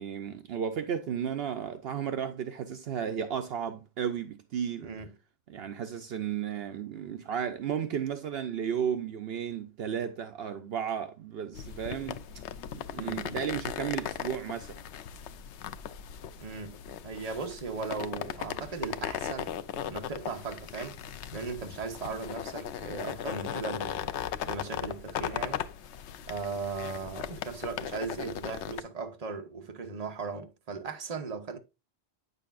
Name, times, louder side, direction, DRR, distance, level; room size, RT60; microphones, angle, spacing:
voice 1, 0.0-4.9 5.5-12.4 12.7-14.8, right 8 dB, 65° right, 0.8 m, -34 dB
voice 2, 4.8-5.1 13.0-13.4 16.4-19.6 19.9-21.0 21.3-24.1 24.5-25.6 26.3-31.6, right 4 dB, 35° right, 1.0 m, -37 dB
sound 1, 11.5-28.8, left 9 dB, 90° left, 0.9 m, -38 dB
9.2 x 6.7 x 2.4 m
omnidirectional pair, 1.1 m